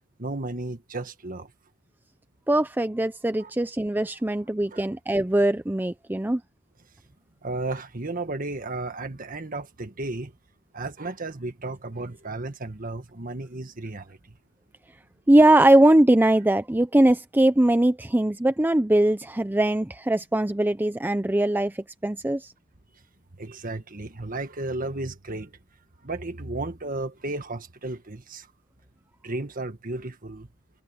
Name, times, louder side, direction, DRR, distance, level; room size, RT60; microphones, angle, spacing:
voice 1, 0.2-1.5 3.4-3.5 4.7-4.8 7.4-10.3 10.7-14.4 23.4-25.5 26.0-28.5 29.2-30.5, right 2 dB, 45° right, 1.7 m, -34 dB
voice 2, 2.5-6.4 15.3-22.5, right 1 dB, 10° right, 0.5 m, -21 dB
head